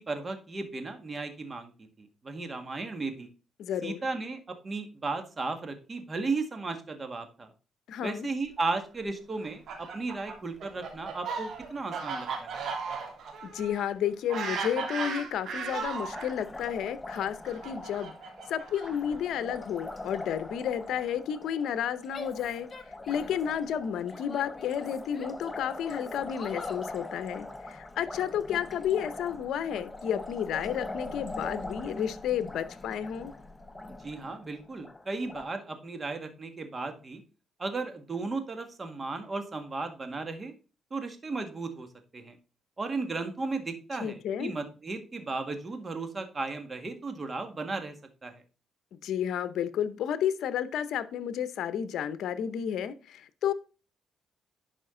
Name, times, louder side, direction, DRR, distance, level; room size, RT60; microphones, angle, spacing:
voice 1, 0.1-1.7 2.0-3.3 3.8-7.5 8.0-12.6 34.0-37.2 37.6-40.5 40.9-41.9 42.1-42.4 42.8-48.0 48.2-48.4, right 3 dB, 30° right, 7 dB, 1.8 m, -35 dB
voice 2, 3.6-4.0 7.9-8.3 13.4-18.1 18.5-22.7 23.1-33.3 44.0-44.5 49.0-53.5, left 9 dB, 75° left, 14 dB, 0.7 m, -31 dB
Fowl, 9.4-16.3 17.1-19.2, right 5 dB, 65° right, 2.8 m, -36 dB
Liquid, 15.9-35.5, left 2 dB, 15° left, 0.9 m, -42 dB
Female speech woman speaking / Yell, 22.1-23.4 23.9-25.4 25.8-26.9, left 4 dB, 40° left, 1.4 m, -45 dB
11.0 x 5.0 x 3.8 m, 0.34 s
cardioid pair, 90°, 0 cm